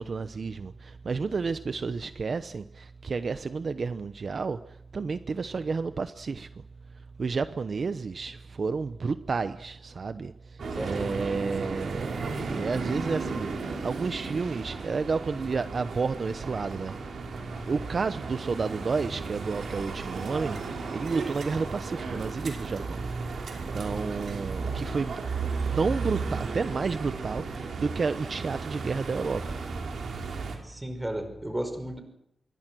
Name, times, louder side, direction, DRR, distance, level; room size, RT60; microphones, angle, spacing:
voice 1, 0.0-4.6 4.9-6.5 7.2-10.3 10.8-16.9 17.7-20.6 20.9-23.0 23.7-25.1 25.7-29.4, right 4 dB, 50° right, 11 dB, 0.9 m, -31 dB
voice 2, 10.6-11.4 30.6-32.0, right 1 dB, 10° right, 7 dB, 5.3 m, -34 dB
sound 1, 10.6-30.6, right 4 dB, 80° right, 5.4 m, -34 dB
26.5 x 23.0 x 6.2 m, 0.78 s
wide cardioid pair, 115°, 0 cm